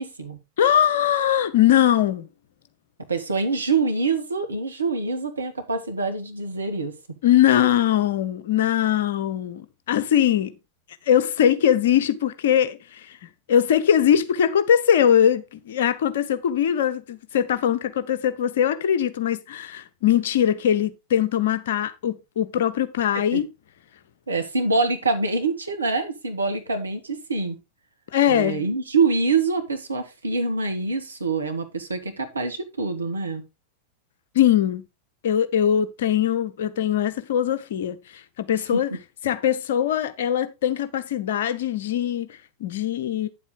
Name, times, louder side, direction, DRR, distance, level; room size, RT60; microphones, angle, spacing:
voice 1, 0.0-0.4 3.1-6.9 23.1-23.4 24.3-27.6 28.3-33.4 38.6-39.0, right 3 dB, 75° right, 1.8 m, -25 dB
voice 2, 0.6-2.3 7.2-10.5 11.1-13.0 13.5-23.5 28.1-28.7 34.3-34.8 35.2-38.0 38.4-38.9 39.2-42.3 42.6-43.3, left 10 dB, 55° left, 1.0 m, -21 dB
9.3 x 7.7 x 3.9 m
figure-of-eight pair, 90°, 0 cm